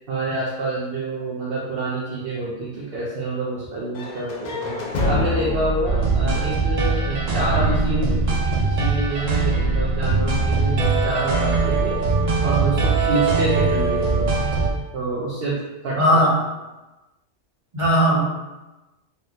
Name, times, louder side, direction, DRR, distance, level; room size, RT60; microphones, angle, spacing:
voice 1, 0.1-12.0 12.4-14.3 14.9-16.0, right 2 dB, 60° right, -5 dB, 0.7 m, -27 dB
sound 1, 3.9-7.9, left 2 dB, 75° left, 0.4 m, -27 dB
sound 2, 5.8-14.7, right 3 dB, 85° right, 0.3 m, -21 dB
voice 2, 16.0-16.3 17.7-18.2, equal, 25° right, -8 dB, 1.0 m, -17 dB
3.5 x 2.1 x 2.6 m, 1.1 s
omnidirectional pair, 1.3 m